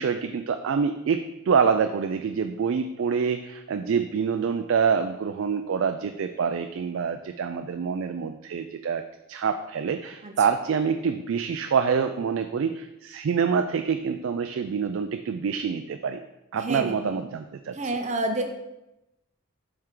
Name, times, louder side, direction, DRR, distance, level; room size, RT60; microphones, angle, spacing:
voice 1, 0.0-16.2 16.5-17.8, right 6 dB, 60° right, 7 dB, 0.3 m, -26 dB
voice 2, 16.6-17.2 17.7-18.4, right 2 dB, 30° right, 4 dB, 0.7 m, -29 dB
7.7 x 4.5 x 3.8 m, 0.92 s
head